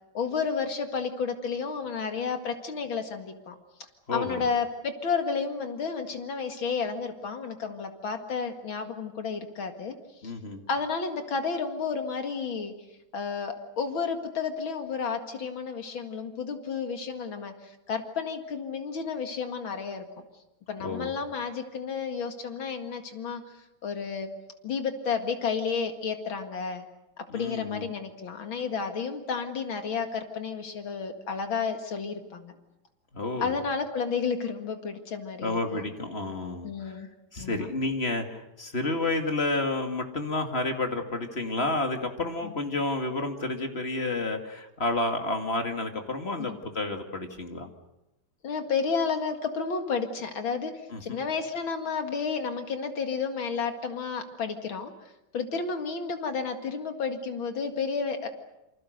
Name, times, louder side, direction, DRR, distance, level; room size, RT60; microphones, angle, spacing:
voice 1, 0.1-3.5 4.1-9.9 10.2-10.3 10.7-12.7 13.1-20.0 20.7-23.4 23.8-24.3 24.6-26.8 27.2-32.5 33.4-35.9 36.6-37.1 37.4-37.7 42.4-42.5 46.4-46.6 48.4-54.9 55.3-58.3, left 5 dB, 80° left, 6 dB, 2.8 m, -31 dB
voice 2, 4.1-4.4 10.2-10.6 20.8-21.1 27.3-27.9 33.1-33.5 35.4-37.1 37.3-47.7 50.9-51.2, left 2 dB, 30° left, 4 dB, 2.6 m, -30 dB
28.0 x 26.5 x 6.6 m, 0.92 s
omnidirectional pair, 2.1 m